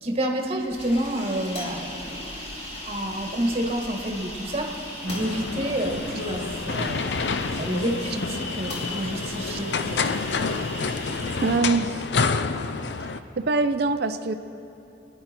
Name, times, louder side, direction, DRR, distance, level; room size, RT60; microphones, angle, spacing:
voice 1, 0.0-2.2 2.8-7.1 7.6-10.1, right 1 dB, 35° right, 2 dB, 1.6 m, -29 dB
sound 1, 0.6-11.6, left 1 dB, 35° left, 2.3 m, -37 dB
sound 2, 5.1-13.2, left 4 dB, 70° left, 0.6 m, -29 dB
voice 2, 11.4-12.0 13.0-14.3, right 3 dB, 60° right, 8 dB, 0.6 m, -24 dB
24.0 x 10.0 x 4.4 m, 3.0 s
head